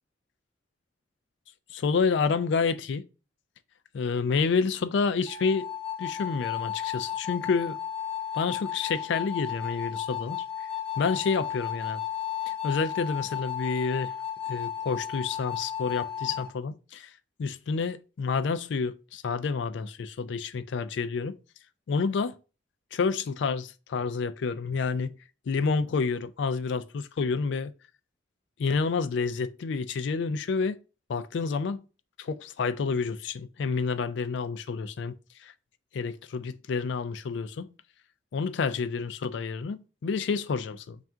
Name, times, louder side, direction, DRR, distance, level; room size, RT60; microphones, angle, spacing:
voice 1, 1.7-3.0 3.9-5.7 6.0-7.8 8.3-10.4 11.0-12.0 12.5-14.1 14.5-17.1 17.4-21.4 21.9-22.3 22.9-25.2 25.5-27.7 28.6-30.8 31.1-31.8 32.2-35.5 35.9-37.7 38.3-41.0, left 5 dB, 65° left, 0.3 m, -29 dB
sound 1, 5.3-16.5, left 9 dB, 5° left, 0.6 m, -34 dB
3.5 x 2.5 x 4.3 m
head